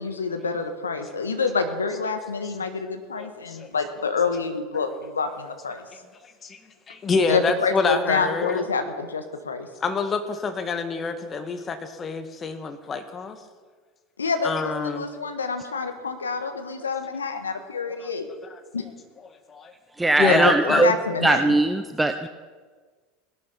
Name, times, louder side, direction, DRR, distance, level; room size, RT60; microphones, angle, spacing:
voice 1, 0.0-5.8 7.3-9.7 14.2-14.5 14.8-18.3 18.7-18.8 20.2-21.6, left 4 dB, 80° left, 7 dB, 1.4 m, -27 dB
voice 2, 3.2-3.7 4.7-4.8 6.2-6.6 6.9-8.6 9.8-13.4 14.4-15.1 18.0-18.1 18.5-18.6 19.5-19.7 20.2-20.9, left 4 dB, 25° left, 8 dB, 1.6 m, -27 dB
voice 3, 20.0-20.9 21.2-22.3, right 2 dB, 10° right, 8 dB, 0.7 m, -20 dB
19.0 x 11.5 x 4.3 m, 1.5 s
figure-of-eight pair, 80°, 0 cm